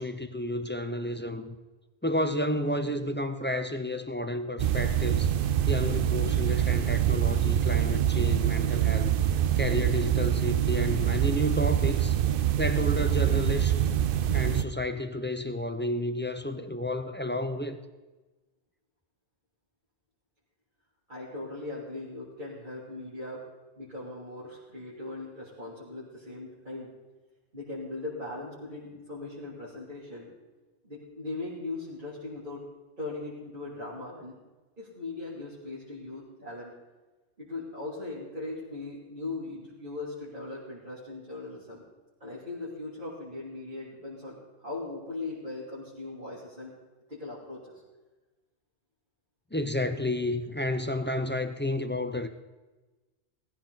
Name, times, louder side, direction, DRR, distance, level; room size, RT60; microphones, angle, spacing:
voice 1, 0.0-1.5 2.0-5.3 5.7-9.1 9.6-12.2 12.6-13.8 14.3-17.8 49.5-52.3, left 1 dB, 15° left, 0.5 m, -31 dB
sound 1, 4.6-14.6, right 10 dB, 60° right, 0.7 m, -25 dB
voice 2, 21.1-23.4 23.8-26.9 27.5-30.3 30.8-32.6 33.0-34.3 34.8-36.7 37.4-41.8 42.2-46.7 47.1-47.8, left 2 dB, 45° right, 3.3 m, -39 dB
18.0 x 14.5 x 4.1 m
omnidirectional pair, 1.2 m